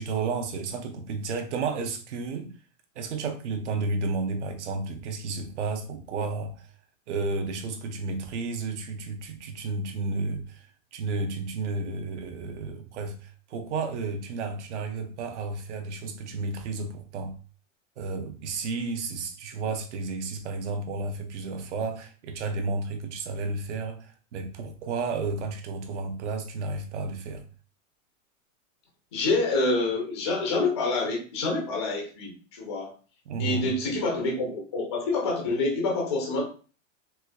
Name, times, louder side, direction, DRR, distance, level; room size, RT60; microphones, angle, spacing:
voice 1, 0.0-2.5 2.9-6.7 7.1-17.4 18.0-27.5 33.3-33.7, right 3 dB, 65° right, 0.7 m, -32 dB
voice 2, 29.1-32.9 33.4-36.5, left 3 dB, 20° left, 0.4 m, -27 dB
4.5 x 2.3 x 2.2 m
supercardioid pair, 180°, 39 cm